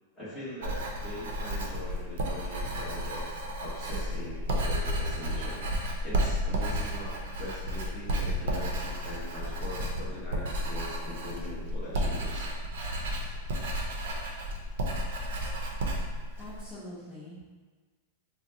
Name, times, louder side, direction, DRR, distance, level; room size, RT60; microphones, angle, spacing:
voice 1, 0.1-3.2 3.6-5.6 6.0-7.1 7.4-12.5, left 1 dB, 5° left, -13 dB, 1.2 m, -41 dB
Writing, 0.6-16.7, equal, 70° right, 0.6 m, -32 dB
voice 2, 16.4-17.4, left 1 dB, 20° left, -12 dB, 0.8 m, -44 dB
3.8 x 2.2 x 2.8 m, 1.4 s
supercardioid pair, 170°, 0 cm